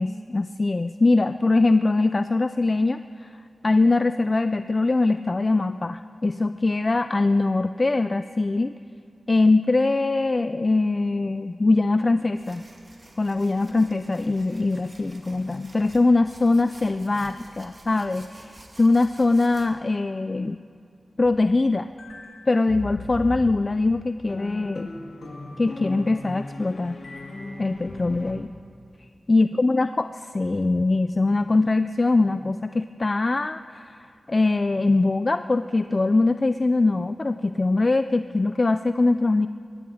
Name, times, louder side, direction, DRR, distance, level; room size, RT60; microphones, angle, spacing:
voice 1, 0.0-3.3 3.6-8.7 9.3-12.7 13.2-20.6 21.2-21.9 22.5-24.9 25.6-27.0 27.6-28.5 29.3-39.5, left 3 dB, 45° left, 11 dB, 0.4 m, -22 dB
sound 1, 12.3-19.7, right 2 dB, 50° right, 2.3 m, -50 dB
sound 2, 21.2-28.3, left 2 dB, 75° left, 2.2 m, -38 dB
19.5 x 14.5 x 4.9 m, 2.4 s
cardioid pair, 45°, 0 cm